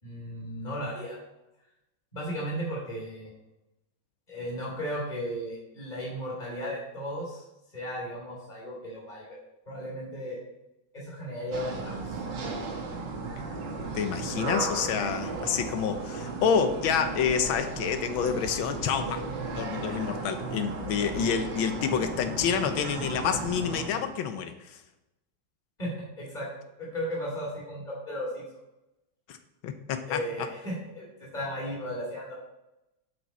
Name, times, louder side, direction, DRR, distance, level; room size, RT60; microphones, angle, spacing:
voice 1, 0.0-1.2 2.1-3.3 4.3-7.4 7.7-9.4 9.7-10.4 10.9-12.2 25.8-26.5 26.8-28.4 30.1-32.3, equal, 20° left, -5 dB, 2.4 m, -35 dB
sound 1, 11.5-23.9, right 3 dB, 65° right, 1.9 m, -35 dB
voice 2, 13.9-19.2 19.6-24.8 29.3-29.4 29.6-30.5, left 7 dB, 85° left, 8 dB, 1.5 m, -28 dB
10.5 x 6.0 x 4.2 m, 0.92 s
omnidirectional pair, 2.2 m